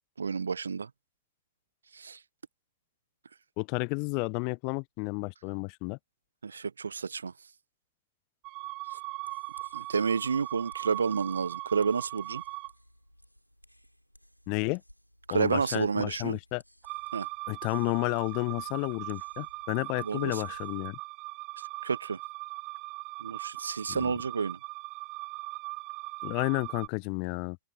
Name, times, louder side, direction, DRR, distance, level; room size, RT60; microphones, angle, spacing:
voice 1, 0.2-0.9 1.9-2.2 6.4-7.3 9.7-12.4 15.3-16.4 17.1-17.3 20.0-20.4 21.8-22.2 23.2-24.6, right 5 dB, 75° right, 0.5 m, -30 dB
voice 2, 3.6-6.0 14.5-14.8 15.3-16.6 17.5-21.0 23.9-24.0 26.2-27.6, left 38 dB, 45° left, 0.7 m, -31 dB
sound 1, 8.4-12.7 16.8-26.9, right 25 dB, 40° right, 1.9 m, -40 dB
sound 2, 9.2-20.9, equal, 90° left, 7.3 m, -59 dB
open air
figure-of-eight pair, 90°, 0 cm